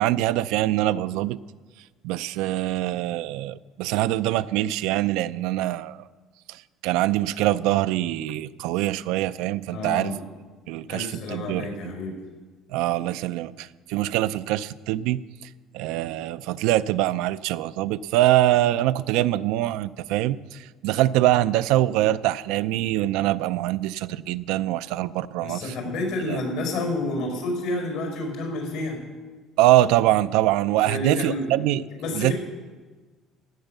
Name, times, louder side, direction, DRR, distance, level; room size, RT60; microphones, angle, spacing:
voice 1, 0.0-1.4 2.0-6.0 6.5-10.1 10.7-11.9 12.7-15.2 15.7-25.7 26.3-26.4 29.6-31.8 32.1-32.3, right 14 dB, 85° right, 14 dB, 0.4 m, -24 dB
voice 2, 9.7-10.2 10.9-12.1 25.4-29.0 30.8-31.5 32.0-32.3, left 2 dB, 80° left, 2 dB, 4.9 m, -29 dB
16.0 x 9.1 x 6.6 m, 1.4 s
cardioid pair, 125°, 0 cm